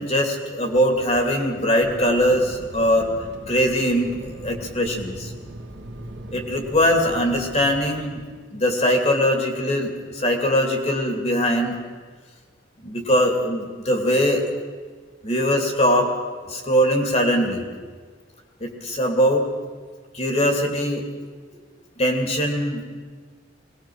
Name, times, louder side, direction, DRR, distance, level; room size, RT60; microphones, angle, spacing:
voice 1, 0.0-3.1 3.5-5.3 6.3-8.2 8.5-11.8 12.8-14.5 15.2-16.1 16.5-17.7 18.6-19.4 20.1-21.0 22.0-22.9, equal, 35° left, 3 dB, 2.6 m, -21 dB
Fixed-wing aircraft airplane, 1.8-8.5, right 1 dB, 65° right, 1.7 m, -39 dB
22.0 x 19.0 x 6.3 m, 1.5 s
head